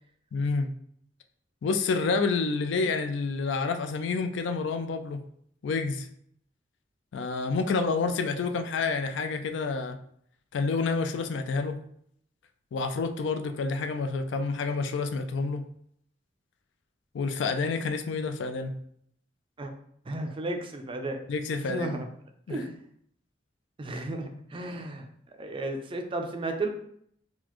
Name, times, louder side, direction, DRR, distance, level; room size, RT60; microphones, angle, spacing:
voice 1, 0.3-0.7 1.6-5.2 5.6-6.1 7.1-10.0 10.5-11.8 12.7-15.6 17.1-18.7 21.3-22.0 22.5-22.6, left 4 dB, 65° left, 8 dB, 0.3 m, -28 dB
voice 2, 20.1-21.2 21.6-22.1 22.5-22.8 23.8-25.1 25.4-26.7, right 2 dB, 30° right, 5 dB, 0.4 m, -33 dB
3.9 x 2.4 x 3.0 m, 0.68 s
head